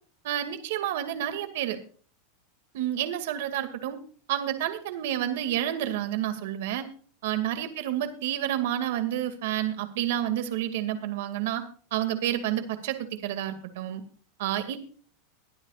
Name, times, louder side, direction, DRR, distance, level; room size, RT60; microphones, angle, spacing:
voice 1, 0.2-1.8 2.7-4.0 4.3-6.9 7.2-11.6 11.9-14.0 14.4-14.8, right 12 dB, 65° right, 8 dB, 2.3 m, -29 dB
21.5 x 12.0 x 2.5 m, 0.43 s
supercardioid pair, 160°, 0 cm